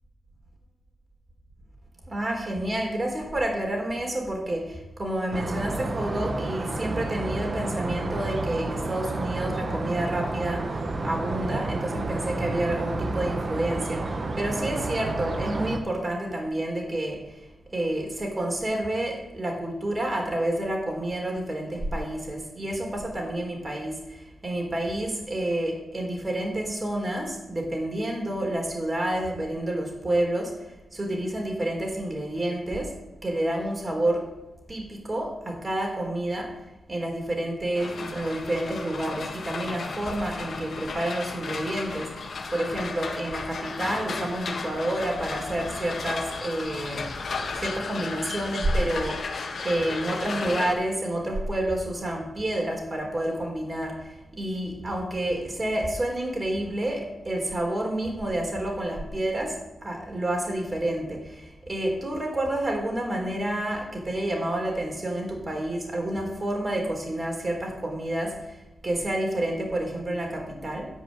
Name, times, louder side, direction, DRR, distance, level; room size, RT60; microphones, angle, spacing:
voice 1, 2.1-17.4 17.7-32.9 33.2-34.2 34.7-36.5 36.9-47.3 47.6-70.9, right 1 dB, 30° right, 0 dB, 3.9 m, -29 dB
sound 1, 5.3-15.8, right 2 dB, 50° right, 1.2 m, -30 dB
sound 2, 37.7-50.7, left 4 dB, 65° left, 1.5 m, -34 dB
10.5 x 5.5 x 8.4 m, 0.99 s
cardioid pair, 60°, 0 cm